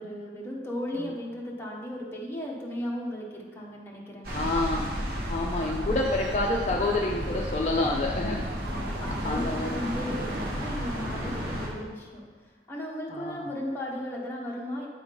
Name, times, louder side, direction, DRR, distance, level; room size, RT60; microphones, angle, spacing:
voice 1, 0.0-4.5 8.4-14.9, equal, 15° left, -4 dB, 1.2 m, -36 dB
sound 1, 4.2-11.7, equal, 55° right, 1.5 m, -33 dB
voice 2, 4.3-4.9 5.3-8.4 9.2-9.8 11.2-11.3 13.1-13.4, left 2 dB, 40° left, -1 dB, 0.5 m, -28 dB
sound 2, 4.4-10.7, right 5 dB, 80° right, 0.4 m, -46 dB
9.0 x 3.8 x 5.2 m, 1.5 s
head